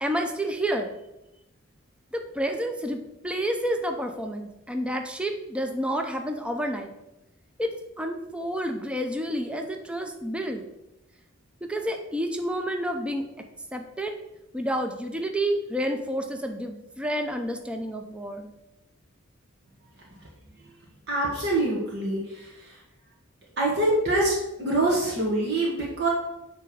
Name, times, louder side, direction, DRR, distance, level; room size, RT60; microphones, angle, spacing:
voice 1, 0.0-0.9 2.1-6.9 7.6-10.6 11.7-13.2 13.7-14.1 14.5-18.5, equal, 5° right, 4 dB, 0.6 m, -29 dB
voice 2, 21.1-22.8 23.6-26.1, right 2 dB, 55° right, -3 dB, 1.6 m, -25 dB
9.0 x 3.5 x 6.2 m, 0.93 s
head